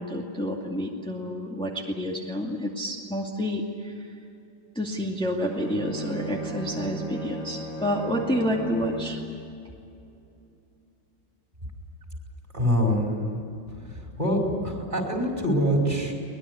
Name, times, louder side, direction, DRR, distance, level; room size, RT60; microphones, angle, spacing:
voice 1, 0.0-3.9 4.8-9.2, equal, 5° left, -1 dB, 2.2 m, -29 dB
Bowed string instrument, 5.4-9.3, right 1 dB, 50° left, 4.0 m, -36 dB
voice 2, 12.5-13.4 13.7-16.1, equal, 25° right, 1 dB, 5.0 m, -25 dB
23.5 x 21.0 x 9.8 m, 2.6 s
omnidirectional pair, 2.0 m